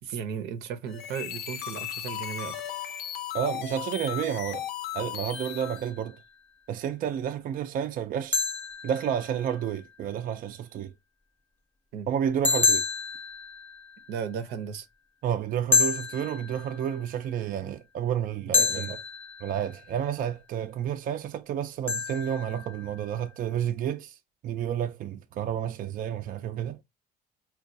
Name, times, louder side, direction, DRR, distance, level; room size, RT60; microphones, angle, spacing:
voice 1, 0.0-2.6 11.9-12.1 14.1-14.9 18.6-19.0, right 7 dB, 90° right, 0.7 m, -35 dB
sound 1, 0.9-5.9, left 10 dB, 70° left, 0.6 m, -36 dB
voice 2, 3.3-4.7 4.9-6.2 6.7-8.4 8.8-10.9 12.1-12.8 15.2-18.9 19.4-24.2 24.4-26.8, right 9 dB, 55° right, 0.4 m, -30 dB
sound 2, 5.3-6.1 8.3-9.7 12.4-14.2 15.7-17.1 18.5-19.9 21.9-23.1, left 4 dB, 10° left, 0.5 m, -29 dB
4.5 x 2.3 x 2.5 m
cardioid pair, 110°, 17 cm